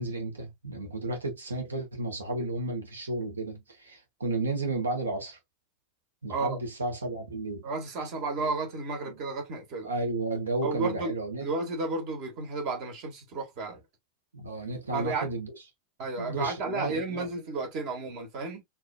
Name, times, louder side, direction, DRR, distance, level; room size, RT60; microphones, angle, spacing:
voice 1, 0.0-5.4 6.2-7.6 9.8-11.4 14.3-15.5 16.2-17.3, right 2 dB, 75° right, 1.4 m, -33 dB
voice 2, 7.6-9.9 10.6-13.8 14.9-15.3 16.0-18.6, right 3 dB, 40° right, 1.7 m, -32 dB
4.7 x 2.8 x 2.3 m
figure-of-eight pair, 90°, 0 cm